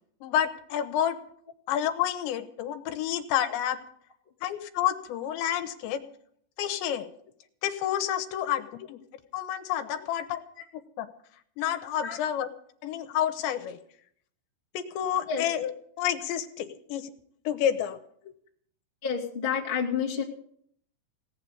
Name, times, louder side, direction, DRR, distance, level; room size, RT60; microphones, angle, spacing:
voice 1, 0.2-1.2 1.7-3.8 4.4-6.0 6.6-7.1 7.6-9.0 9.3-10.4 11.0-11.1 11.6-12.5 12.8-13.8 14.7-15.7 16.0-17.1 17.5-18.0, left 10 dB, 80° left, 9 dB, 3.2 m, -29 dB
voice 2, 19.0-20.2, left 6 dB, 20° left, -2 dB, 1.5 m, -29 dB
17.5 x 8.3 x 8.6 m, 0.64 s
omnidirectional pair, 5.2 m